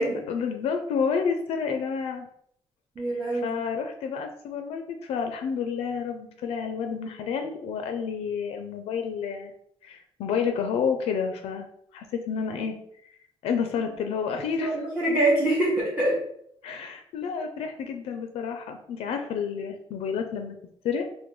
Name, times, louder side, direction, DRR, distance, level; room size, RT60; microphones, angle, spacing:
voice 1, 0.3-2.3 3.3-9.5 9.8-11.7 11.9-12.8 13.4-14.8 16.6-20.6 20.8-21.1, left 6 dB, 80° left, 5 dB, 0.4 m, -29 dB
voice 2, 3.0-3.6 14.5-16.2, right 1 dB, 15° right, -6 dB, 0.7 m, -24 dB
3.5 x 2.1 x 3.1 m, 0.69 s
cardioid pair, 170°, 10 cm